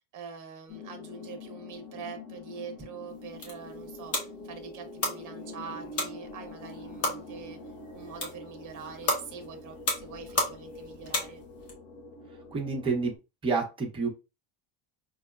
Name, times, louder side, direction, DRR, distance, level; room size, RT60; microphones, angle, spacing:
voice 1, 0.0-7.6 7.9-11.4, right 6 dB, 40° right, 5 dB, 0.9 m, -44 dB
sound 1, 0.7-13.2, left 2 dB, 70° left, 1.1 m, -45 dB
sound 2, 3.1-11.7, left 2 dB, 30° left, 0.9 m, -35 dB
voice 2, 12.5-13.1 13.4-14.1, right 4 dB, 10° right, -2 dB, 0.6 m, -28 dB
5.2 x 2.0 x 2.3 m, 0.28 s
cardioid pair, 175°, 48 cm